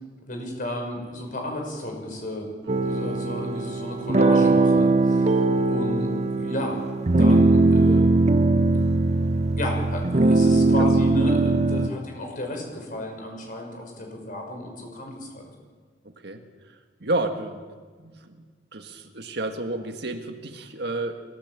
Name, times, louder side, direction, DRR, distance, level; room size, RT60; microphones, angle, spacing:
voice 1, 0.2-2.5 2.8-6.8 7.1-8.0 9.6-15.5, left 1 dB, 50° left, 2 dB, 6.1 m, -33 dB
sound 1, 2.7-11.9, right 2 dB, 40° right, 0.7 m, -20 dB
voice 2, 17.0-17.6 18.0-18.4 18.7-21.2, right 2 dB, 70° right, 5 dB, 1.8 m, -31 dB
24.0 x 15.0 x 7.6 m, 1.6 s
head